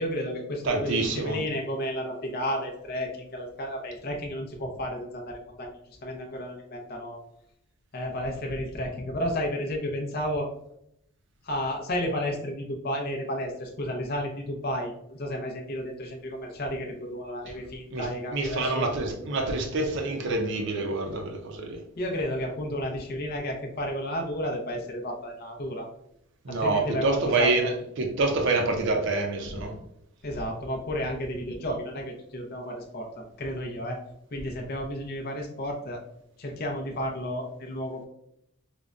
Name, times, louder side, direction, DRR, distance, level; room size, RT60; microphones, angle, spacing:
voice 1, 0.0-7.2 7.9-10.5 11.4-18.8 22.0-25.9 26.5-27.5 30.2-34.0 34.3-36.0 36.4-38.1, equal, 45° left, 1 dB, 0.5 m, -32 dB
voice 2, 0.6-1.4 17.5-17.6 17.9-21.8 26.4-29.7, right 3 dB, 55° right, 2 dB, 0.5 m, -27 dB
5.0 x 2.1 x 2.4 m, 0.76 s
head